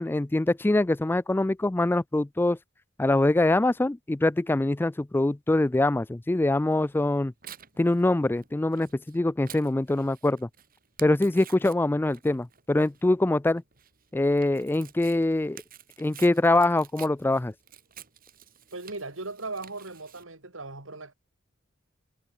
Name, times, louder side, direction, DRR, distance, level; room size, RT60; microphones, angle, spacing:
voice 1, 0.0-2.6 3.0-7.3 7.8-10.5 11.0-13.6 14.1-15.6 16.0-17.5, left 2 dB, 10° left, 0.3 m, -24 dB
Tearing, 6.7-20.2, right 9 dB, 50° right, 4.1 m, -50 dB
voice 2, 18.7-21.1, right 3 dB, 85° right, 3.9 m, -38 dB
head